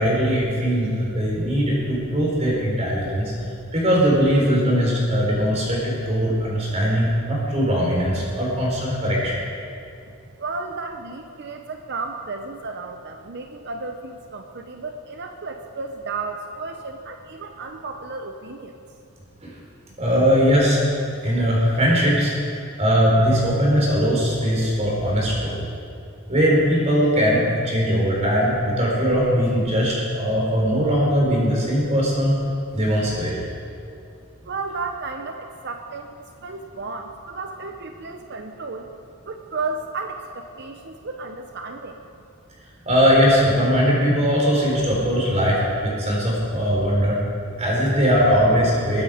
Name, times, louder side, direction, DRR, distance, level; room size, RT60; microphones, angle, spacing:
voice 1, 0.0-3.3 3.7-9.4 19.4-19.5 20.0-20.9 21.2-22.3 22.8-25.6 26.3-32.4 32.7-33.4 42.9-47.2 47.6-49.0, equal, 30° right, -4 dB, 3.9 m, -20 dB
voice 2, 10.4-18.8 34.4-38.9 39.3-42.0, right 3 dB, 50° right, 5 dB, 0.7 m, -33 dB
21.0 x 9.1 x 5.0 m, 2.5 s
head